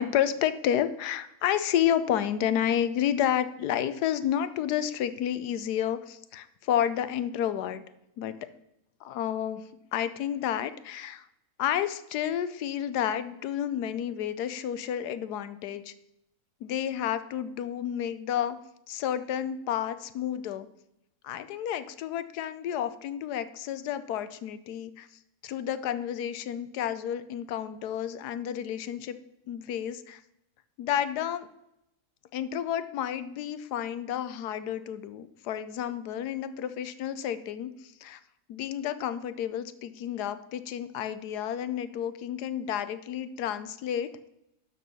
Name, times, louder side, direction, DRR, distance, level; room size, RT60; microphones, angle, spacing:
voice 1, 0.0-7.8 8.2-8.4 9.0-9.6 9.9-11.2 11.6-15.9 16.6-18.6 18.9-20.7 21.2-25.1 25.4-29.2 29.5-30.2 30.8-31.5 32.3-38.2 38.5-44.1, left 10 dB, 85° left, 13 dB, 1.2 m, -30 dB
12.5 x 4.5 x 5.3 m, 0.82 s
omnidirectional pair, 1.7 m